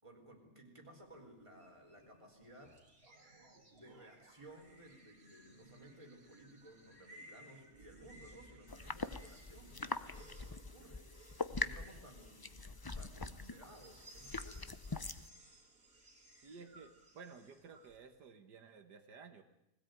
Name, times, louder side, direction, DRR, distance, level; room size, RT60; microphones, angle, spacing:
voice 1, 0.0-2.8 3.5-11.1 11.5-12.6 12.9-14.7, right 1 dB, 20° right, 0 dB, 4.4 m, -58 dB
sound 1, 1.0-18.0, right 1 dB, 55° right, 3.9 m, -61 dB
sound 2, 2.6-7.1, right 2 dB, 35° right, 2.6 m, -67 dB
sound 3, 8.7-15.3, left 3 dB, 30° left, 0.4 m, -43 dB
voice 2, 16.4-19.4, right 5 dB, 85° right, 7 dB, 2.0 m, -54 dB
21.0 x 17.0 x 9.3 m, 0.82 s
omnidirectional pair, 1.7 m